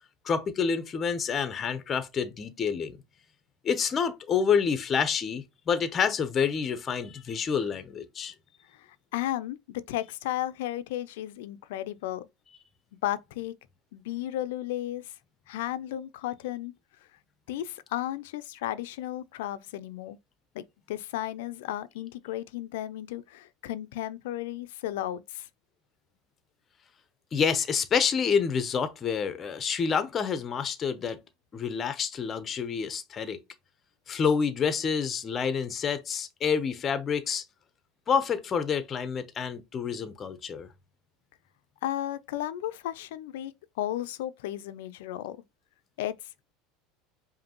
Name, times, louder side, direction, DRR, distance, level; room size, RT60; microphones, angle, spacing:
voice 1, 0.2-3.0 3.6-8.3 27.3-31.2 31.5-33.4 34.1-37.4 38.1-40.7, left 6 dB, 30° left, 0.6 m, -28 dB
voice 2, 8.7-12.3 13.0-13.5 13.9-15.1 15.5-16.7 17.5-20.2 20.5-25.5 41.8-43.5 43.8-45.4 46.0-46.2, left 13 dB, 85° left, 0.4 m, -34 dB
5.1 x 2.7 x 3.0 m
supercardioid pair, 125°, 0 cm